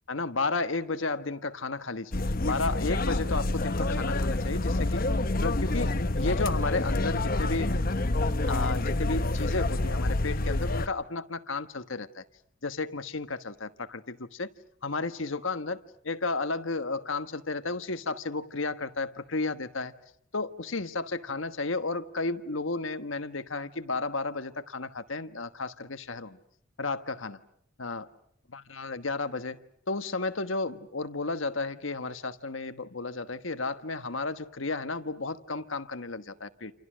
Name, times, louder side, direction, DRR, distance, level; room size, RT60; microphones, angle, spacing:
voice 1, 0.1-5.0 5.4-7.7 8.5-12.2 12.6-14.5 14.8-15.8 16.0-19.9 20.3-26.4 26.8-27.4 27.8-28.1 28.5-29.6 29.9-36.7, left 3 dB, 85° left, 10 dB, 1.4 m, -33 dB
sound 1, 2.1-10.9, left 2 dB, 45° left, 1.0 m, -27 dB
29.0 x 28.5 x 6.3 m, 0.68 s
head